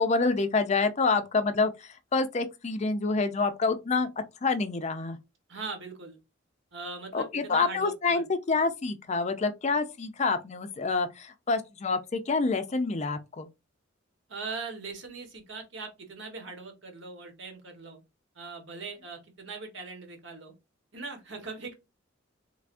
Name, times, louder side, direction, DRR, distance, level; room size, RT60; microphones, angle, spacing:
voice 1, 0.0-4.1 4.4-5.2 7.1-13.5, left 4 dB, 35° left, 0.4 m, -27 dB
voice 2, 5.5-6.2 6.7-8.2 14.3-18.0 18.3-20.5 20.9-21.7, right 4 dB, 65° right, 1.2 m, -40 dB
3.5 x 3.2 x 2.5 m
head